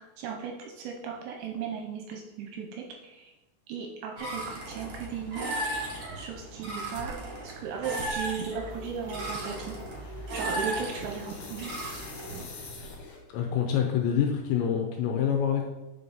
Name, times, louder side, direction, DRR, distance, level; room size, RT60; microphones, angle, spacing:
voice 1, 0.0-3.3 3.7-5.7 6.1-7.1 7.4-9.8 10.3-11.7, right 6 dB, 80° right, 1 dB, 2.7 m, -36 dB
sound 1, 4.2-12.4, right 1 dB, 55° right, 1.6 m, -36 dB
sound 2, 6.9-7.2 7.9-13.4, left 3 dB, 60° left, 2.5 m, -44 dB
voice 2, 13.3-15.7, left 8 dB, 80° left, 2 dB, 2.8 m, -26 dB
8.4 x 5.6 x 4.0 m, 1.0 s
omnidirectional pair, 5.7 m